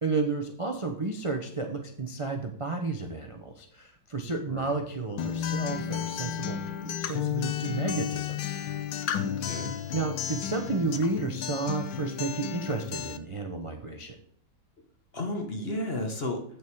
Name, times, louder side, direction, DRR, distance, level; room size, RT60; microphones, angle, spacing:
voice 1, 0.0-8.4 8.9-9.4 9.9-14.2, right 3 dB, 45° right, 4 dB, 0.4 m, -32 dB
Acoustic guitar, 5.2-13.2, left 9 dB, 70° left, 1.4 m, -33 dB
voice 2, 9.2-9.7 15.1-16.4, left 1 dB, 35° left, 3 dB, 1.2 m, -33 dB
8.6 x 6.5 x 4.7 m, 0.62 s
omnidirectional pair, 2.1 m